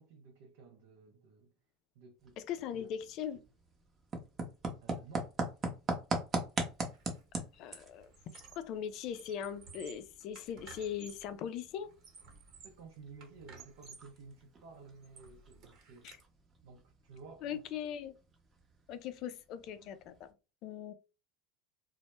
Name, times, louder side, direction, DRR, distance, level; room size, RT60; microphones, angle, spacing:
voice 1, 0.0-1.5 2.0-2.4 2.8-2.9 4.8-5.3 12.6-16.2 16.6-17.6, right 4 dB, 75° right, 0.5 m, -54 dB
sound 1, 2.2-20.3, right 2 dB, 30° right, 0.7 m, -43 dB
voice 2, 2.4-3.4 7.5-8.1 8.5-11.9 16.0-16.1 17.4-18.1 18.9-20.3 20.6-20.9, left 9 dB, 55° left, 0.4 m, -40 dB
Squeak, 6.9-7.2 7.5-8.8 9.1-11.3 11.8-12.8 13.2-14.1 14.6-16.2, right 5 dB, 50° right, 1.0 m, -55 dB
2.1 x 2.0 x 2.9 m
supercardioid pair, 105°, 0 cm